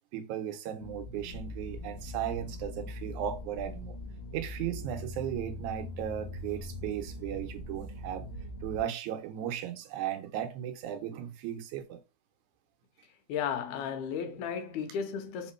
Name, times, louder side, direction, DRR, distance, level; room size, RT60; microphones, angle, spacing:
voice 1, 0.1-4.0 4.3-8.3 8.6-12.0, right 10 dB, 80° right, 2.0 m, -36 dB
sound 1, 0.8-8.8, left 1 dB, 55° left, 1.9 m, -41 dB
voice 2, 13.3-15.5, left 7 dB, 85° left, 2.1 m, -34 dB
4.3 x 3.6 x 3.0 m
omnidirectional pair, 3.5 m